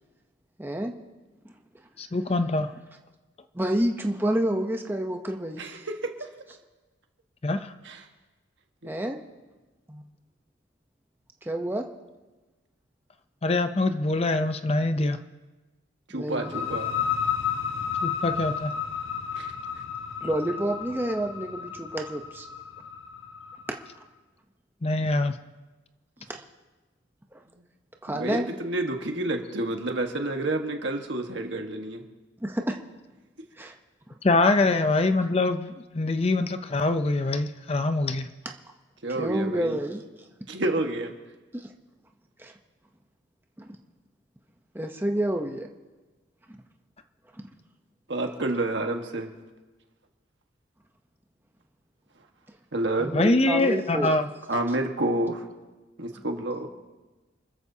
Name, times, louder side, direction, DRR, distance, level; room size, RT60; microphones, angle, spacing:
voice 1, 0.6-0.9 1.4-1.5 3.5-5.9 8.8-9.2 9.9-10.0 11.4-11.8 16.1-16.8 20.2-22.5 26.3-26.4 27.3-27.4 28.0-28.5 32.4-32.8 33.6-33.8 39.1-40.0 41.5-41.7 42.4-42.5 43.6-43.8 44.7-45.7 46.5-46.6 53.0-54.1, right 1 dB, 10° right, 2 dB, 0.8 m, -29 dB
voice 2, 2.0-2.7 7.4-7.7 13.4-15.2 18.0-18.7 24.8-25.4 34.2-38.3 53.1-54.3, left 2 dB, 30° left, 9 dB, 0.5 m, -24 dB
voice 3, 5.6-6.3 7.8-8.0 8.8-8.9 16.1-16.9 19.3-19.5 28.1-32.0 39.0-39.8 40.5-41.1 48.1-49.3 52.7-53.3 54.5-55.4 56.0-56.7, right 2 dB, 65° right, 4 dB, 1.5 m, -29 dB
sound 1, 16.4-23.9, left 7 dB, 80° left, 1.3 m, -32 dB
28.0 x 14.0 x 2.8 m, 1.2 s
head